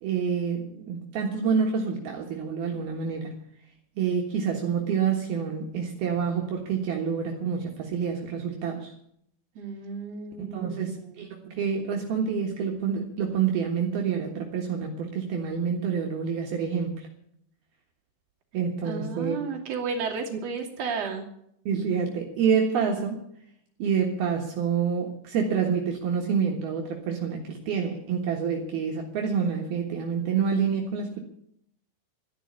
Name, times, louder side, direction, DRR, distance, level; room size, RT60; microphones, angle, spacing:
voice 1, 0.0-3.4 4.0-8.9 10.4-17.1 18.5-19.4 20.3-20.4 21.7-23.3 23.8-31.2, right 6 dB, 65° right, 1 dB, 3.2 m, -27 dB
voice 2, 9.5-11.2 18.8-21.2, right 5 dB, 40° right, 0 dB, 3.3 m, -33 dB
13.5 x 11.0 x 8.4 m, 0.71 s
omnidirectional pair, 5.1 m